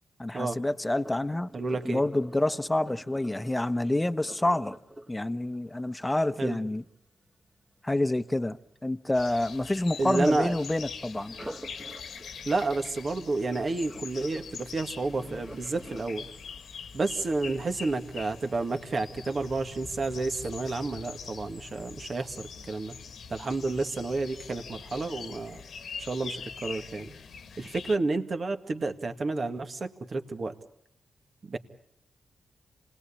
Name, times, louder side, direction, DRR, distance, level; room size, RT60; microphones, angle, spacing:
voice 1, 0.2-1.5 1.8-4.7 5.1-6.8 7.8-8.6 8.8-11.4, left 1 dB, 15° left, 1.0 m, -28 dB
Sink (filling or washing), 0.9-6.9 11.2-18.3 18.8-19.1 19.6-19.7, right 1 dB, 20° right, 2.0 m, -48 dB
voice 2, 1.5-2.0 6.4-6.6 10.0-10.5 12.5-16.3 16.9-23.0 23.3-25.6 26.0-27.1 27.6-30.5 31.4-31.6, right 3 dB, 50° right, 2.0 m, -30 dB
sound 1, 9.1-28.0, left 6 dB, 75° left, 1.4 m, -44 dB
27.0 x 19.0 x 8.6 m
cardioid pair, 55°, 0 cm